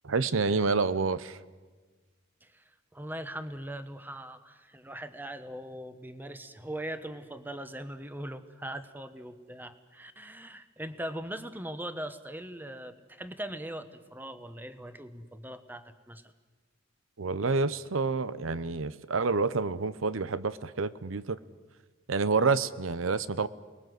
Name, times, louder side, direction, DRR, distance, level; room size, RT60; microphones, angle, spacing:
voice 1, 0.0-1.4 17.2-21.4 22.1-23.5, right 4 dB, 85° right, 15 dB, 0.8 m, -28 dB
voice 2, 2.4-16.3, right 1 dB, 10° right, 10 dB, 1.1 m, -40 dB
29.0 x 20.5 x 7.9 m, 1.3 s
head